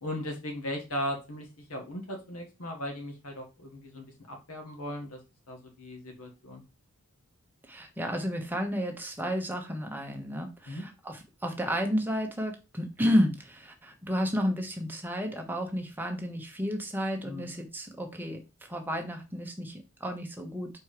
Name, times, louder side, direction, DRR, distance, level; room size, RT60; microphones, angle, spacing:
voice 1, 0.0-5.2 5.5-6.6 10.7-10.8 17.2-17.5, left 1 dB, 75° left, 3 dB, 1.5 m, -37 dB
voice 2, 7.6-20.7, equal, 10° right, 3 dB, 1.0 m, -31 dB
4.6 x 4.4 x 4.9 m, 0.29 s
head